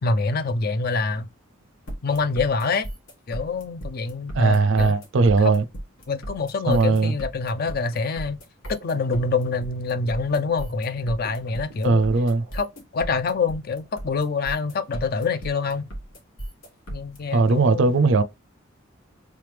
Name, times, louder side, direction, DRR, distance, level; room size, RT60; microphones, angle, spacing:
voice 1, 0.0-1.3 2.0-2.9 3.3-4.9 5.4-5.5 6.1-8.4 8.7-12.0 12.5-15.9 16.9-17.9, left 4 dB, 45° left, 0.4 m, -26 dB
sound 1, 1.9-17.2, right 1 dB, 85° left, 1.7 m, -36 dB
voice 2, 4.3-5.6 6.7-7.1 11.8-12.4 17.3-18.2, right 3 dB, 65° right, 0.4 m, -19 dB
3.3 x 3.2 x 3.2 m
head